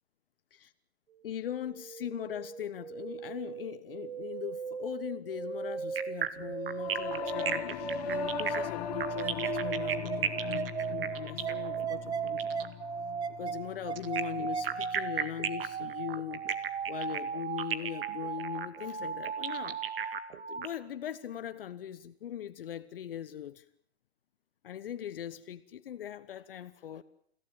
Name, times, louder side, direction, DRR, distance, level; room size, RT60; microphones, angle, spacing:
voice 1, 1.2-12.6 13.4-16.5 16.9-19.8 20.5-23.6 24.6-27.0, left 10 dB, 60° left, 13 dB, 1.3 m, -40 dB
sound 1, 1.5-20.6, right 6 dB, 85° right, 1.9 m, -37 dB
sound 2, 6.0-12.7 14.0-20.7, right 9 dB, 60° right, 2.1 m, -35 dB
Singing / Musical instrument, 6.7-16.3, left 14 dB, 35° left, 1.5 m, -41 dB
29.0 x 17.0 x 9.0 m, 0.69 s
hypercardioid pair, 145°, 32 cm